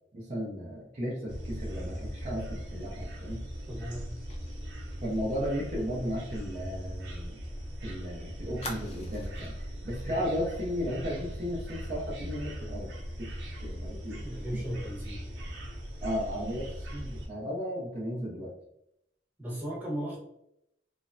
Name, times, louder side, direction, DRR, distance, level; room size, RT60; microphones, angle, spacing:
voice 1, 0.1-3.4 5.0-7.3 7.8-14.2 16.0-18.5, equal, 40° right, -6 dB, 0.5 m, -35 dB
sound 1, 1.3-17.3, equal, 85° right, 0.7 m, -39 dB
voice 2, 3.7-4.1 10.0-10.2 14.2-15.2 19.4-20.2, equal, 10° right, -6 dB, 1.0 m, -36 dB
Fire, 4.3-7.7 8.0-8.1 8.6-9.6 10.0-10.2 10.5-10.7, left 2 dB, 35° left, 0.4 m, -46 dB
3.2 x 2.0 x 2.5 m, 0.77 s
head